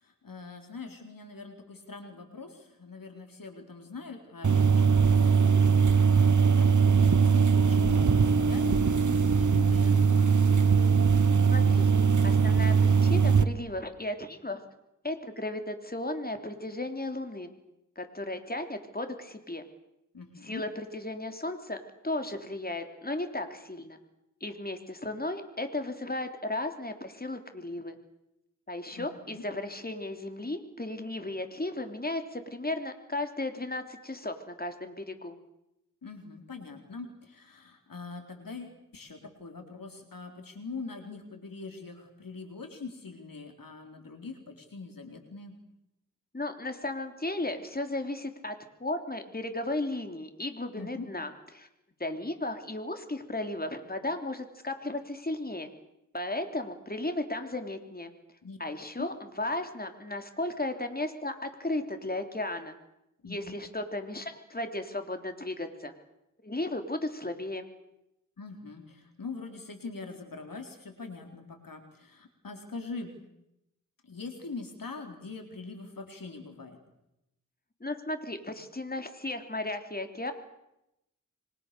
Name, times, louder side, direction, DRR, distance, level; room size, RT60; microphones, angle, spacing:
voice 1, 0.0-10.4 20.1-20.6 29.0-29.4 36.0-45.5 50.8-51.1 58.4-58.6 59.0-59.1 63.2-63.6 68.4-73.1 74.0-76.8, left 4 dB, 85° left, 5 dB, 4.1 m, -43 dB
sound 1, 4.4-13.4, right 6 dB, 60° right, 1.2 m, -21 dB
voice 2, 11.5-11.9 12.2-14.6 15.0-17.5 17.9-19.6 20.4-21.8 22.0-24.0 24.4-28.0 28.7-35.4 46.3-48.5 48.8-51.7 52.0-55.7 56.1-58.1 58.6-62.7 63.2-65.9 66.4-67.7 77.8-80.3, left 2 dB, 30° left, 6 dB, 3.4 m, -35 dB
27.0 x 24.5 x 6.9 m, 0.86 s
wide cardioid pair, 60°, 33 cm